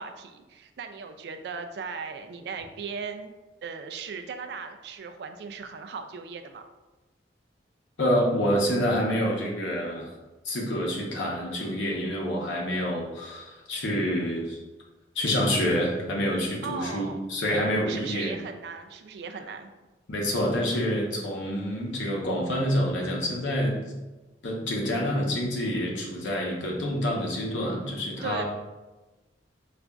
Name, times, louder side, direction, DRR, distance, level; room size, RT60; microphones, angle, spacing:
voice 1, 0.0-6.6 16.6-17.2 17.9-19.7 28.2-28.4, right 5 dB, 60° right, 6 dB, 0.3 m, -37 dB
voice 2, 8.0-10.1 10.4-14.6 15.1-18.4 20.1-23.9 24.4-28.4, equal, 80° left, -1 dB, 0.8 m, -27 dB
4.9 x 2.4 x 2.2 m, 1.2 s
head